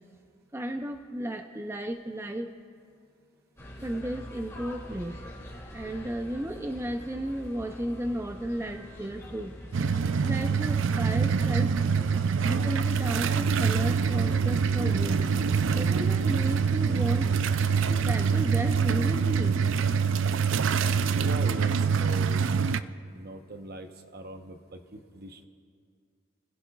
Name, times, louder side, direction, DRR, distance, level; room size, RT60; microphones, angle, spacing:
voice 1, 0.5-2.5 3.8-5.2 5.7-9.5 10.2-11.7 12.4-15.2 15.7-17.3 17.9-19.6, right 1 dB, 15° right, 5 dB, 0.5 m, -34 dB
sound 1, 3.6-18.1, equal, 15° left, 2.6 m, -45 dB
sound 2, 9.7-22.8, right 6 dB, 75° right, 0.4 m, -25 dB
voice 2, 21.2-22.5 23.0-25.5, right 1 dB, 55° right, 6 dB, 0.9 m, -41 dB
28.0 x 15.5 x 2.3 m, 2.2 s
head